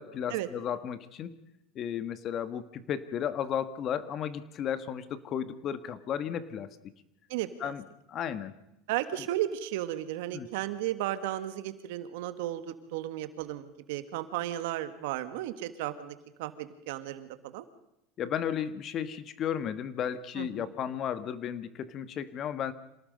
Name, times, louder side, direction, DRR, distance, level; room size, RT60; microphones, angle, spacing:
voice 1, 0.0-1.3 1.7-6.7 7.6-8.5 9.1-9.2 10.3-10.5 18.2-22.7, left 9 dB, 40° left, 13 dB, 1.4 m, -34 dB
voice 2, 7.3-7.7 8.9-17.6 20.4-20.7, right 13 dB, 80° right, 11 dB, 1.7 m, -34 dB
27.0 x 18.5 x 5.3 m, 0.87 s
supercardioid pair, 120°, 0 cm